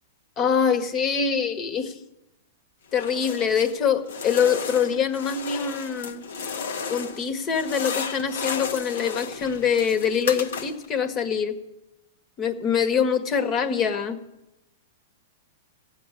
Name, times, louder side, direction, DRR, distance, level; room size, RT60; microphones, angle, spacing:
voice 1, 0.4-2.0 2.9-6.2 6.9-11.6 12.4-14.2, left 7 dB, 30° left, 9 dB, 1.6 m, -24 dB
sound 1, 2.9-3.8 4.1-7.2 7.5-10.9, left 5 dB, 75° left, 1.5 m, -33 dB
15.0 x 8.0 x 9.9 m, 0.95 s
hypercardioid pair, 115°, 0 cm